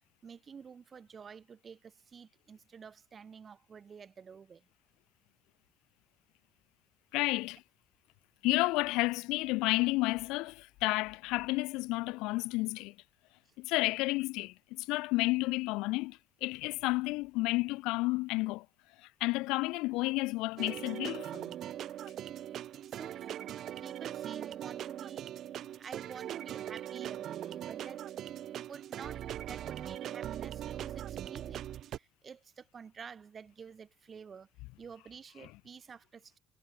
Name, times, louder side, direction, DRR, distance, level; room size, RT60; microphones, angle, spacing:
voice 1, 0.2-4.7 13.5-13.6 22.9-23.5 23.8-25.3 25.8-28.1 28.6-34.5 34.8-36.4, right 6 dB, 40° right, 7.3 m, -50 dB
voice 2, 7.1-7.6 8.4-10.5 10.8-12.9 13.6-18.6 19.2-21.5, left 22 dB, 85° left, 1.1 m, -31 dB
sound 1, 20.6-32.0, right 11 dB, 60° right, 1.3 m, -40 dB
supercardioid pair, 90°, 0 cm